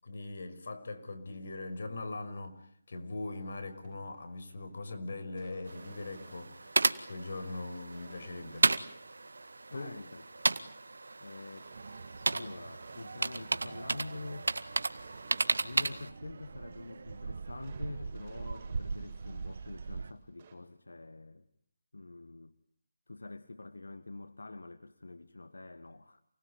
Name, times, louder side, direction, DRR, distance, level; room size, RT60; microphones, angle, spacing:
voice 1, 0.0-8.7 9.7-9.9, left 2 dB, 60° left, 9 dB, 5.7 m, -41 dB
sound 1, 3.4-20.6, right 5 dB, 30° right, 7.0 m, -62 dB
sound 2, 5.7-16.1, right 3 dB, 85° right, 1.8 m, -34 dB
voice 2, 9.7-10.6 11.2-11.7 12.3-14.5 15.6-21.5 21.9-22.5 23.1-26.2, left 2 dB, 90° left, 12 dB, 1.6 m, -46 dB
sound 3, 11.7-20.1, right 4 dB, 60° right, 1.5 m, -43 dB
29.0 x 21.0 x 9.5 m, 0.64 s
figure-of-eight pair, 165°, 0 cm